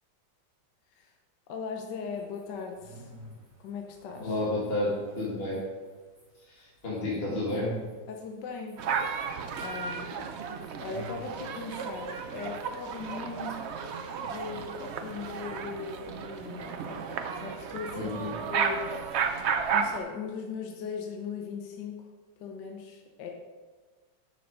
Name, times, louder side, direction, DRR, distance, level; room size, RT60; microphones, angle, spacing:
voice 1, 1.5-3.1 3.6-4.4 8.1-8.8 9.1-9.2 9.6-10.3 10.8-13.6 14.2-18.1 18.5-19.1 19.7-22.0 22.4-23.3, left 5 dB, 70° left, 3 dB, 1.4 m, -39 dB
sound 1, 2.0-15.4, right 1 dB, 15° right, 2.4 m, -49 dB
voice 2, 4.2-5.6 6.6-7.7 17.9-18.3, left 1 dB, 35° left, -6 dB, 2.1 m, -31 dB
sound 2, 8.8-20.0, right 6 dB, 80° right, 0.6 m, -33 dB
7.8 x 6.4 x 5.2 m, 1.4 s
omnidirectional pair, 2.0 m